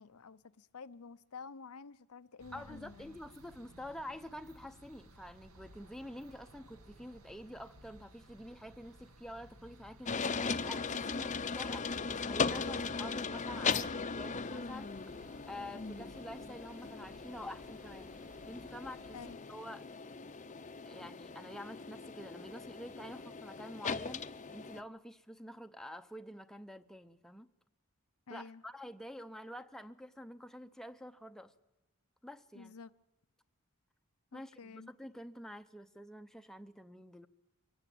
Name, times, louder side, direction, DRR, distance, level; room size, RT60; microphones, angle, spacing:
voice 1, 0.0-3.2 10.9-11.3 19.1-19.5 28.3-28.6 32.5-32.9 34.3-34.9, left 5 dB, 80° left, 0.7 m, -50 dB
sound 1, 2.4-19.3, equal, 75° right, 1.9 m, -58 dB
voice 2, 2.5-14.9 15.2-18.2 18.5-19.2 19.5-19.8 20.9-24.2 24.5-27.5 28.3-31.5 32.2-32.7 34.3-37.3, equal, ahead, 0.7 m, -48 dB
sound 2, 10.1-24.8, left 5 dB, 35° left, 0.7 m, -38 dB
24.0 x 18.0 x 8.5 m
head